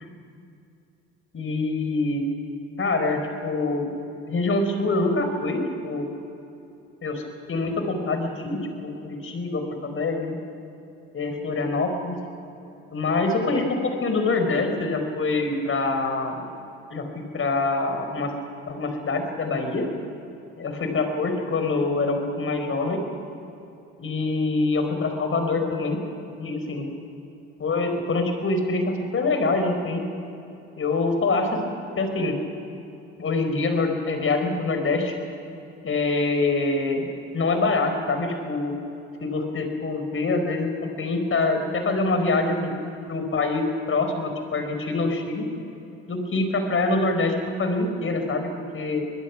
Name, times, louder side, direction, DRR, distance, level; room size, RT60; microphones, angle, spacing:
voice 1, 1.3-2.2 2.8-3.9 4.3-6.1 7.0-7.2 7.5-10.4 11.1-12.2 12.9-16.4 16.9-18.3 18.6-19.8 20.6-23.0 24.0-26.0 26.4-26.9 27.6-30.0 30.8-31.6 32.0-32.4 33.2-35.1 35.8-38.7 39.2-42.7 43.1-45.5 46.1-49.0, left 3 dB, 40° left, 5 dB, 4.8 m, -25 dB
25.5 x 21.5 x 6.0 m, 2.8 s
hypercardioid pair, 55°, 32 cm